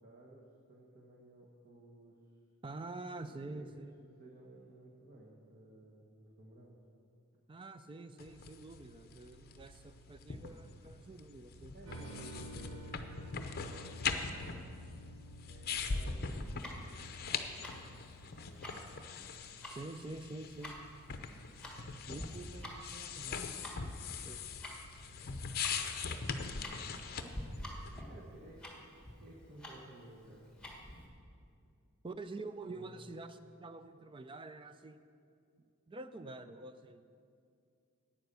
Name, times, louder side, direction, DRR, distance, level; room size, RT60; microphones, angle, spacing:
voice 1, 0.0-2.2 3.2-3.7 4.0-6.8 11.7-13.0 13.4-14.6 15.5-19.1 26.9-27.4 28.0-30.5 32.6-33.0, right 1 dB, 40° right, -3 dB, 1.3 m, -56 dB
voice 2, 2.6-3.9 7.5-11.7 19.7-20.8 22.1-23.4 24.2-24.4 32.0-35.0 35.9-37.0, right 2 dB, 20° right, 10 dB, 0.4 m, -47 dB
sound 1, 8.2-28.0, left 5 dB, 45° left, 0.6 m, -42 dB
sound 2, 11.9-18.9, equal, 75° right, 1.1 m, -52 dB
Tick-tock, 16.4-31.1, left 1 dB, 5° left, 1.3 m, -49 dB
9.2 x 8.8 x 6.8 m, 2.4 s
head